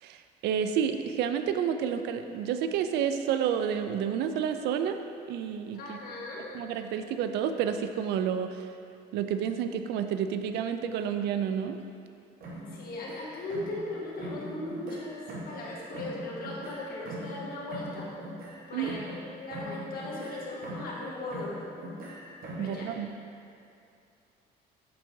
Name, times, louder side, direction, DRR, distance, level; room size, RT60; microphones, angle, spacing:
voice 1, 0.0-5.0 5.3-6.0 6.5-8.7 9.1-11.8 18.7-18.9 22.6-23.1, right 8 dB, 80° right, 8 dB, 0.4 m, -30 dB
voice 2, 5.7-6.5 12.7-18.0 18.7-21.7 22.6-22.9, left 2 dB, 60° left, -4 dB, 1.5 m, -38 dB
sound 1, 12.4-13.9 14.2-15.7 15.9-19.3 19.5-21.0 21.3-22.8, equal, 60° right, 1.2 m, -41 dB
7.5 x 5.7 x 2.7 m, 2.6 s
cardioid pair, 110°, 17 cm